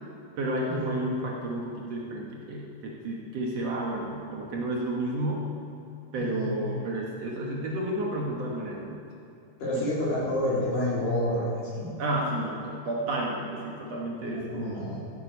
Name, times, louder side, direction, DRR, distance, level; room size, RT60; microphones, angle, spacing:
voice 1, 0.4-5.4 6.1-9.0 9.7-9.9 12.0-15.1, right 1 dB, 60° right, -2 dB, 2.0 m, -31 dB
voice 2, 6.1-6.5 9.6-11.9 14.3-15.0, left 1 dB, 75° left, -8 dB, 5.2 m, -29 dB
14.0 x 8.7 x 5.4 m, 2.6 s
omnidirectional pair, 3.9 m